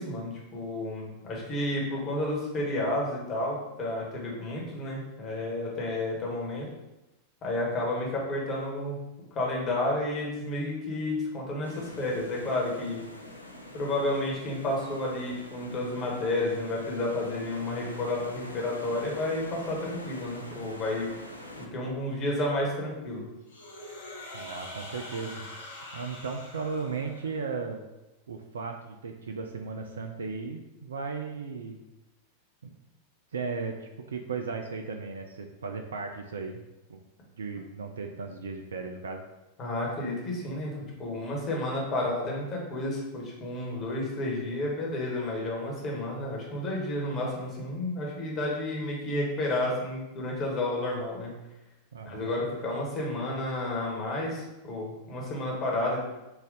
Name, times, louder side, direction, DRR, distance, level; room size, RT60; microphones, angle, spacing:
voice 1, 0.0-6.7 7.4-9.0 9.3-13.0 13.7-21.1 21.6-23.2 39.6-40.7 41.0-51.3 52.0-56.0, left 1 dB, 30° left, -3 dB, 1.2 m, -31 dB
sound 1, 11.6-21.7, left 1 dB, 85° left, 0.4 m, -45 dB
sound 2, 23.5-27.5, left 1 dB, 70° left, 0.8 m, -44 dB
voice 2, 24.3-25.5 25.9-27.8 28.3-31.8 32.6-32.7 33.3-36.6 36.9-37.0 37.4-39.2 51.9-52.3, right 4 dB, 65° right, 4 dB, 0.3 m, -36 dB
3.9 x 2.5 x 3.9 m, 0.99 s
figure-of-eight pair, 90°, 0 cm